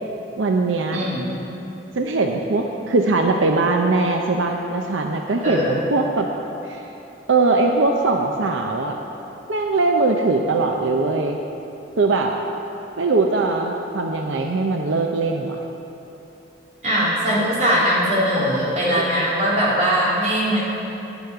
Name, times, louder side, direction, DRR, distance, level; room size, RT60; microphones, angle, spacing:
voice 1, 0.4-1.0 2.0-6.3 6.7-6.8 7.3-9.0 9.5-11.4 12.0-12.3 13.0-15.6 18.4-18.5, right 3 dB, 85° right, 3 dB, 0.6 m, -21 dB
voice 2, 0.9-1.3 5.4-5.8 16.8-20.6, equal, 40° right, -7 dB, 2.8 m, -20 dB
9.8 x 8.3 x 6.8 m, 3.0 s
head